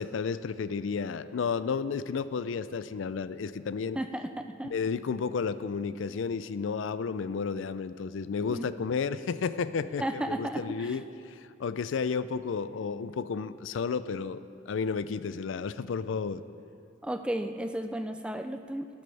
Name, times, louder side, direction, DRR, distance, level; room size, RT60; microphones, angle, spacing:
voice 1, 0.0-4.0 4.7-16.4, left 5 dB, 80° left, 15 dB, 0.4 m, -32 dB
voice 2, 4.0-4.7 8.4-8.7 10.0-11.0 17.0-18.9, right 1 dB, 5° right, 7 dB, 0.3 m, -34 dB
14.5 x 12.0 x 3.4 m, 2.5 s
head